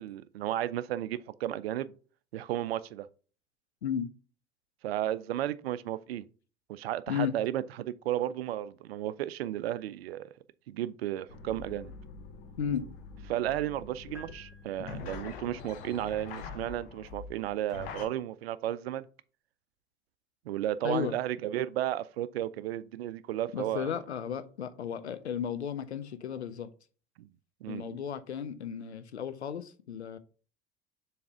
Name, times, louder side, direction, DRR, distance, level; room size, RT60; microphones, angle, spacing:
voice 1, 0.0-1.9 2.3-3.1 4.8-6.3 6.7-10.3 10.7-11.9 13.3-19.1 20.5-23.9 27.2-27.3 27.6-27.8, right 12 dB, 65° right, 0.5 m, -33 dB
sound 1, 11.3-18.1, left 5 dB, 60° left, 1.0 m, -44 dB
sound 2, 14.1-15.5, left 1 dB, 5° right, 1.2 m, -53 dB
voice 2, 20.8-21.2 23.5-26.7 27.7-30.2, left 8 dB, 80° left, 0.6 m, -34 dB
7.0 x 3.3 x 4.7 m
figure-of-eight pair, 65°, 33 cm